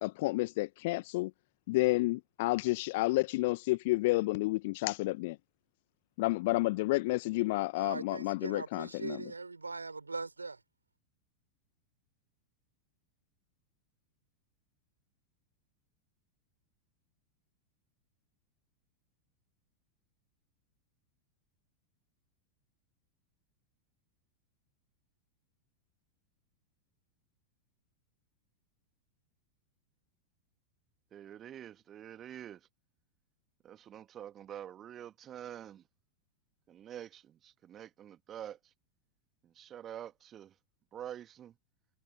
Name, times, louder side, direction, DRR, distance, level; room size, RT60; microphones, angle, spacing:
voice 1, 0.0-1.3 1.7-5.4 6.2-9.2, left 21 dB, 50° left, 1.3 m, -30 dB
voice 2, 7.8-10.6, right 3 dB, 80° right, 5.7 m, -40 dB
voice 3, 31.1-32.7 33.6-35.8 36.7-38.7 39.4-40.6 40.9-41.5, right 10 dB, 30° right, 1.7 m, -47 dB
figure-of-eight pair, 90°, 0 cm